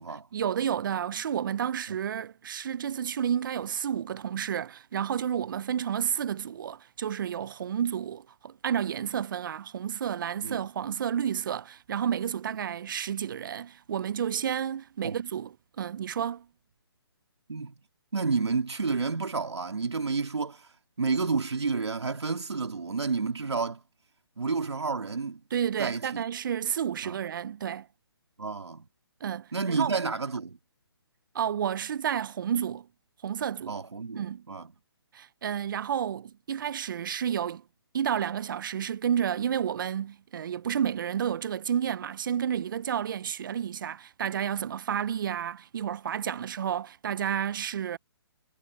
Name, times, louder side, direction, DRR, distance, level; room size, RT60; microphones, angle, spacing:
voice 1, 0.3-16.5 25.5-27.9 29.2-30.0 31.3-32.9 33.2-33.8 34.2-34.4 35.1-37.6 37.9-48.0, right 9 dB, 50° right, 0.7 m, -31 dB
voice 2, 18.1-20.7 21.0-23.8 24.4-25.4 25.8-26.2 27.0-27.2 28.4-28.9 29.5-30.6 33.7-34.7, right 4 dB, 85° right, 2.3 m, -30 dB
hypercardioid pair, 150°, 14 cm